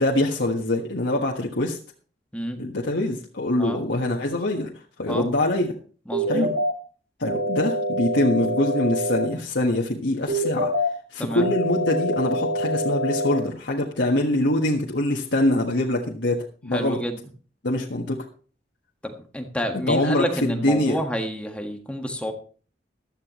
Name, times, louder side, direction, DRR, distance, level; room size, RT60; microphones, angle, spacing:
voice 1, 0.0-1.8 2.6-4.7 5.0-5.7 6.3-6.5 7.2-10.7 11.1-17.0 17.6-18.2 19.9-21.0, left 1 dB, 85° left, -1 dB, 1.5 m, -24 dB
voice 2, 6.1-6.5 11.2-11.5 16.7-17.2 19.0-22.3, equal, 5° left, 4 dB, 1.6 m, -29 dB
sound 1, 6.1-6.7 7.3-9.3 10.3-10.9 11.4-13.4, equal, 65° right, 2.4 m, -25 dB
15.5 x 12.0 x 3.1 m, 0.40 s
head